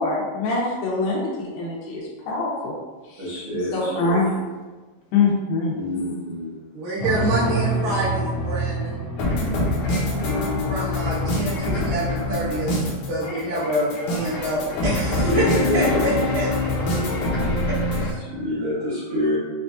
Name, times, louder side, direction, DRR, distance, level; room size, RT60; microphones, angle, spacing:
voice 1, 0.0-2.7 3.1-3.3 3.7-4.4 5.1-6.1, left 3 dB, 90° left, -4 dB, 2.7 m, -24 dB
voice 2, 3.2-4.3 5.7-6.5 15.3-16.0 18.1-19.4, left 1 dB, 60° right, -11 dB, 1.4 m, -26 dB
voice 3, 6.7-9.0 10.7-15.5 15.7-16.5 17.7-17.8, right 1 dB, 85° right, -9 dB, 3.3 m, -27 dB
sound 1, 7.0-10.9 12.7-13.2 13.6-13.7 13.9-14.6, right 2 dB, 45° left, 1.2 m, -28 dB
sound 2, 9.2-18.1, left 1 dB, 70° left, 2.1 m, -24 dB
7.0 x 2.4 x 2.6 m, 1.3 s
omnidirectional pair, 4.1 m